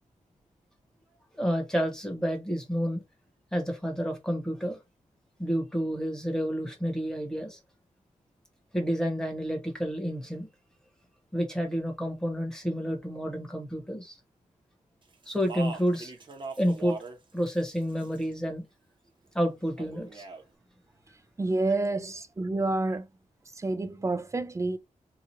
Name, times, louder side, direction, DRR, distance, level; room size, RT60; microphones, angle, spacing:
voice 1, 1.4-3.0 3.5-4.8 5.4-7.6 8.7-10.5 11.3-14.2 15.3-16.1 16.6-17.0 17.3-18.6 19.3-20.2, equal, 5° left, 1.1 m, -29 dB
Speech, 15.2-17.2 17.5-18.3 19.8-20.4, right 4 dB, 40° right, 0.8 m, -40 dB
voice 2, 21.4-23.1 23.5-24.8, right 2 dB, 20° right, 0.4 m, -29 dB
2.9 x 2.4 x 4.3 m
wide cardioid pair, 125°, 13 cm